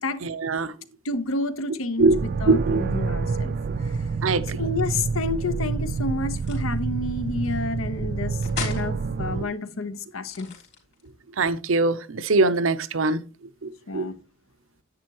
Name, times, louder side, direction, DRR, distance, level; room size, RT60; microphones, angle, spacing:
voice 1, 0.2-0.7 2.0-2.2 2.5-2.8 4.2-4.6 11.4-13.2 13.6-14.0, right 3 dB, 70° right, 0.7 m, -22 dB
voice 2, 1.0-3.5 3.8-3.9 4.5-10.5 13.9-14.2, left 2 dB, 80° left, 1.0 m, -30 dB
sound 1, 2.0-9.4, right 4 dB, 50° right, 0.4 m, -28 dB
sound 2, 6.3-6.8 8.4-8.9 10.2-11.1, left 5 dB, 55° left, 3.6 m, -35 dB
10.5 x 8.3 x 3.0 m
head